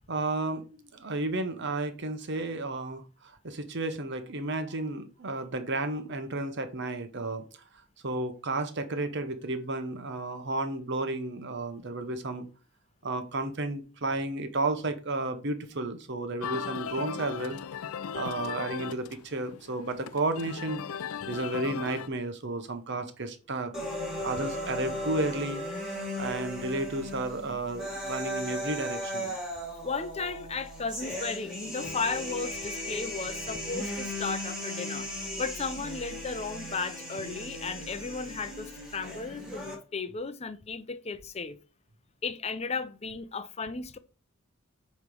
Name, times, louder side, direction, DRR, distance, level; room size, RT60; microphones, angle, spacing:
voice 1, 0.1-7.6 8.0-12.5 13.0-17.6 18.1-21.0 21.3-23.7 24.2-25.6 25.9-29.3, right 2 dB, 55° right, 1.0 m, -32 dB
sound 1, 16.4-22.1, left 7 dB, 85° left, 0.4 m, -37 dB
sound 2, 23.7-39.7, left 1 dB, 5° right, 2.5 m, -37 dB
voice 2, 29.8-35.1 35.4-41.6 42.2-44.0, left 4 dB, 30° left, 0.6 m, -35 dB
8.1 x 3.2 x 5.4 m
head